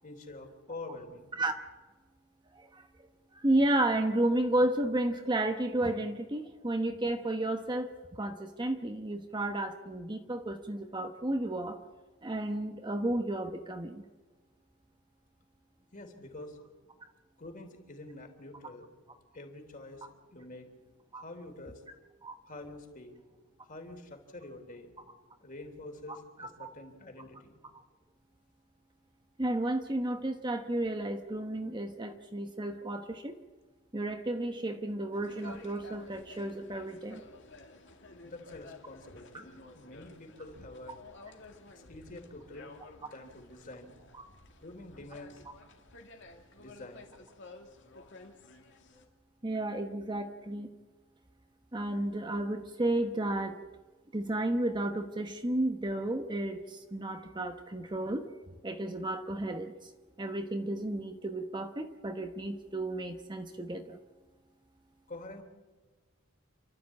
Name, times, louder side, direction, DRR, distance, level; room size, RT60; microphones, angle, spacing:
voice 1, 0.0-1.3 15.9-16.6 17.4-18.9 19.3-20.7 21.2-21.8 22.5-23.1 23.6-24.9 25.4-27.6 38.2-41.0 41.7-42.7 43.0-43.9 44.6-45.4 46.6-47.1 65.1-65.4, left 2 dB, 40° left, 4 dB, 3.3 m, -47 dB
voice 2, 2.5-2.9 3.3-11.8 12.2-14.0 21.1-21.2 22.2-22.3 26.4-26.7 29.4-33.3 33.9-37.2 44.1-44.2 49.4-50.7 51.7-53.6 54.1-58.2 58.6-59.9 60.2-64.0, right 1 dB, 20° right, 6 dB, 1.0 m, -32 dB
sound 1, 35.1-49.1, left 2 dB, 55° left, 2.4 m, -53 dB
28.5 x 13.0 x 8.5 m, 1.3 s
head